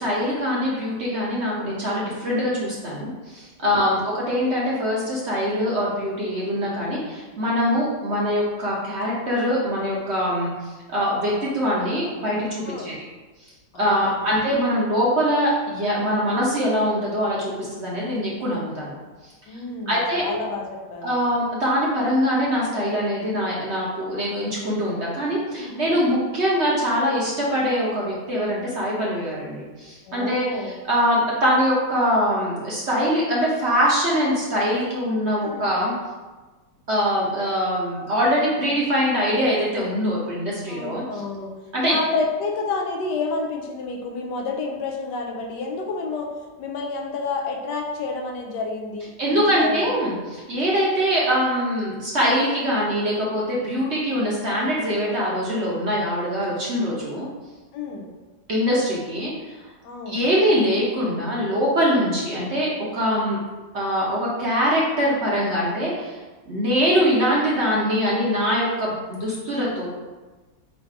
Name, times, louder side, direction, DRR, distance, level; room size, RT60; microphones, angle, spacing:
voice 1, 0.0-10.5 10.9-12.9 13.7-18.9 19.9-20.3 21.0-35.9 36.9-41.0 41.7-42.0 49.2-57.3 58.5-59.3 60.1-63.4 63.7-66.2 66.5-69.9, equal, 50° right, -5 dB, 0.9 m, -23 dB
voice 2, 3.6-4.0 12.6-12.9 13.7-14.2 19.5-21.1 25.6-26.0 30.0-30.8 35.4-35.7 40.7-41.5 41.9-46.3 46.6-50.2 57.7-58.1 59.8-60.2, left 3 dB, 80° left, 1 dB, 1.3 m, -30 dB
4.0 x 2.5 x 4.6 m, 1.2 s
omnidirectional pair, 1.8 m